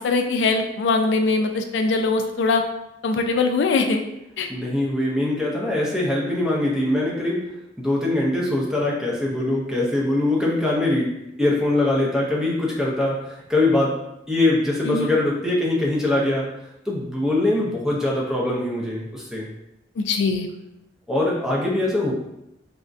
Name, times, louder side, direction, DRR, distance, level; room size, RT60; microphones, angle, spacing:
voice 1, 0.0-2.6 3.0-4.0 4.4-4.5 14.9-15.1 20.0-20.5, left 3 dB, 75° left, 5 dB, 0.3 m, -21 dB
voice 2, 4.5-7.5 7.8-11.1 11.4-13.9 14.3-16.5 16.9-19.5 21.1-22.1, left 2 dB, 5° right, -4 dB, 0.5 m, -22 dB
3.5 x 2.1 x 2.5 m, 0.86 s
head